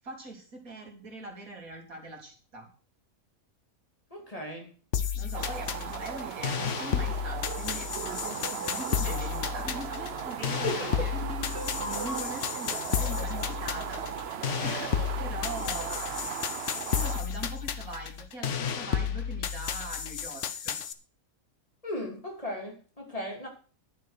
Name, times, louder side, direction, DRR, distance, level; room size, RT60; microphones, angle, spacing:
voice 1, 0.0-2.7 5.1-11.1 11.8-14.9 15.2-16.3 16.9-20.8, right 2 dB, 90° right, 1 dB, 3.6 m, -42 dB
voice 2, 4.1-4.7 10.4-11.1 21.8-23.5, left 1 dB, 25° left, 1 dB, 2.9 m, -36 dB
sound 1, 4.9-20.9, left 8 dB, 60° left, 1.2 m, -32 dB
sound 2, 5.3-17.2, right 8 dB, 55° right, 0.9 m, -37 dB
sound 3, 11.1-14.7, equal, 10° right, 2.9 m, -43 dB
11.5 x 7.3 x 6.4 m, 0.39 s
omnidirectional pair, 1.4 m